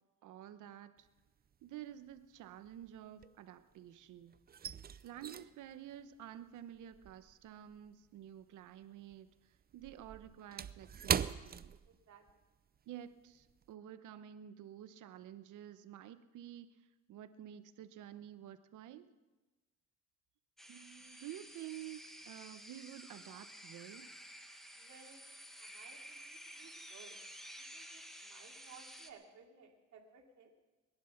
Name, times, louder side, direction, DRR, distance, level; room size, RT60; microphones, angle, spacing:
voice 1, 0.2-1.1 1.6-4.3 5.0-9.3 9.7-11.7 12.9-16.7 17.1-19.1 20.7-24.1, right 11 dB, 80° right, 11 dB, 1.0 m, -50 dB
sound 1, 1.1-1.6 1.9-3.9 4.2-8.8 9.1-12.4 12.7-12.9 13.4-13.7, right 8 dB, 30° right, 0.5 m, -41 dB
voice 2, 11.8-12.2 24.7-27.2 27.6-30.5, right 6 dB, 65° right, 1 dB, 2.8 m, -60 dB
sound 2, 20.6-29.1, equal, ahead, 1.5 m, -52 dB
21.5 x 11.0 x 5.8 m, 1.2 s
cardioid pair, 90°, 30 cm